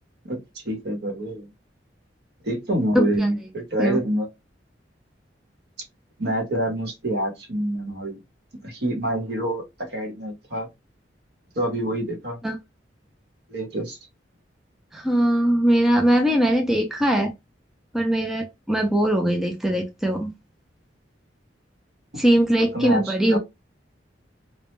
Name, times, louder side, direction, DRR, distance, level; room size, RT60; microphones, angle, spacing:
voice 1, 0.2-1.5 2.4-4.3 6.2-8.2 8.6-10.7 11.6-12.4 13.5-14.0 22.7-23.4, right 1 dB, 60° right, 0.9 m, -27 dB
voice 2, 2.9-3.3 3.8-4.0 12.4-12.6 14.9-17.3 17.9-20.3 22.2-23.4, right 1 dB, ahead, 0.3 m, -21 dB
2.1 x 2.1 x 2.9 m
head